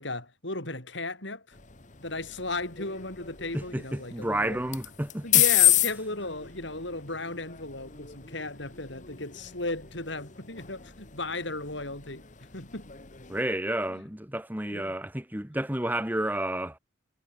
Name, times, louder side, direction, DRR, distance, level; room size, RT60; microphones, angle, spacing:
voice 1, 0.0-1.6 2.0-4.6 5.2-12.9 13.9-14.0 14.7-14.9, left 2 dB, 65° left, 5.6 m, -36 dB
sound 1, 1.5-13.4, left 13 dB, 40° left, 1.3 m, -31 dB
voice 2, 3.5-5.4 13.3-16.8, right 1 dB, 10° right, 1.5 m, -31 dB
head